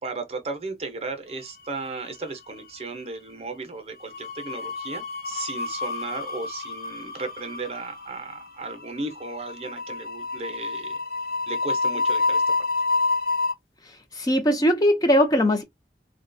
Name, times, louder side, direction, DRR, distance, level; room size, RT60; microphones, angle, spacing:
voice 1, 0.0-11.0 11.5-12.4, right 3 dB, 35° right, 0.7 m, -35 dB
sound 1, 1.5-2.3 2.5-2.8 4.0-13.5, left 3 dB, 55° left, 0.8 m, -28 dB
voice 2, 14.1-15.6, equal, 20° left, 0.6 m, -20 dB
3.8 x 2.2 x 2.6 m
head